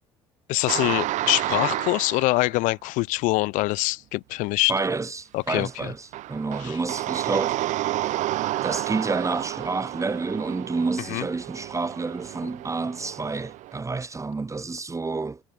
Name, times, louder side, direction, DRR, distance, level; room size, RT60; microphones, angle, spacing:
voice 1, 0.5-4.7 5.3-5.9 6.6-6.8 11.1-11.2, left 22 dB, 70° left, 6.4 m, -24 dB
sound 1, 0.7-2.5 5.5-5.7 6.1-13.8, right 15 dB, 60° right, 7.2 m, -30 dB
voice 2, 4.7-7.6 8.6-15.4, right 3 dB, 20° right, 2.9 m, -29 dB
hypercardioid pair, 60°, 14 cm